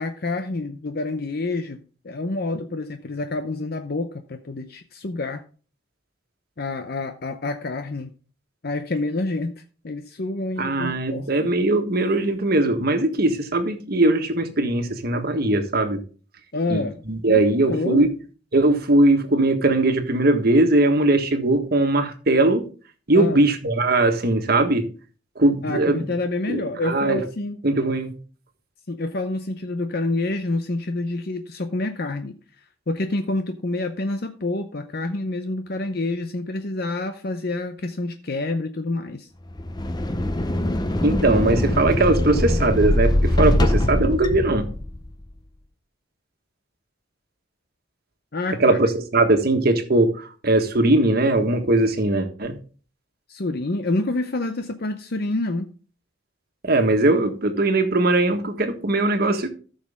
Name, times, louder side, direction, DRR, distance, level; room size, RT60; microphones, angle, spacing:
voice 1, 0.0-5.4 6.6-8.1 8.6-9.6 9.8-11.5 16.5-17.0 17.3-18.1 23.1-23.4 25.6-27.6 28.9-39.3 48.3-48.8 53.3-55.7, left 2 dB, 55° left, 8 dB, 0.7 m, -28 dB
voice 2, 10.6-16.0 16.7-18.1 18.5-22.6 23.1-24.8 25.3-26.1 26.5-27.2 27.6-28.1 41.0-44.7 48.6-52.5 56.6-59.5, right 2 dB, 55° right, 6 dB, 1.5 m, -20 dB
sound 1, 39.5-45.1, left 1 dB, 20° left, 0.7 m, -22 dB
14.0 x 6.5 x 3.6 m, 0.37 s
head